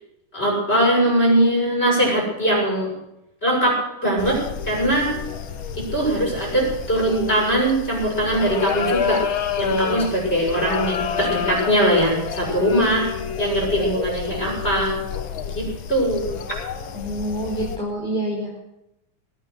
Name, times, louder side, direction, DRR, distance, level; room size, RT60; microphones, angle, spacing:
voice 1, 0.3-2.9 3.4-5.1 5.7-9.2 9.6-13.1 13.4-15.0 15.5-16.3, right 1 dB, 20° left, -1 dB, 7.3 m, -21 dB
sound 1, 4.2-17.8, left 7 dB, 65° left, 1.3 m, -29 dB
voice 2, 16.9-18.6, right 1 dB, ahead, -6 dB, 4.5 m, -27 dB
22.5 x 9.0 x 6.5 m, 0.86 s
omnidirectional pair, 3.6 m